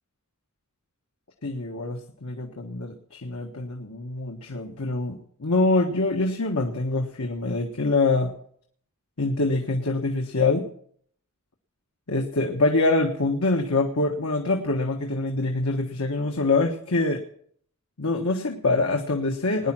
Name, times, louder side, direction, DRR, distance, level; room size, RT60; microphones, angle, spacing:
voice 1, 1.4-8.3 9.2-10.7 12.1-17.2 18.0-19.7, left 2 dB, 85° left, 2 dB, 1.4 m, -25 dB
19.0 x 10.0 x 6.2 m, 0.64 s
head